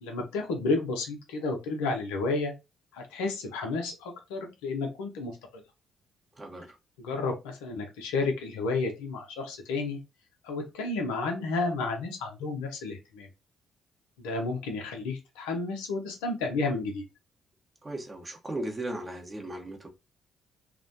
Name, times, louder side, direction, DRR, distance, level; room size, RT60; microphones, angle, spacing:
voice 1, 0.0-2.5 2.9-5.3 7.0-10.0 10.4-13.3 14.2-17.0, left 3 dB, 70° left, 0.5 m, -31 dB
voice 2, 6.3-6.8 17.8-19.9, right 1 dB, 25° right, 0.7 m, -37 dB
2.3 x 2.1 x 2.5 m
figure-of-eight pair, 40°, 0 cm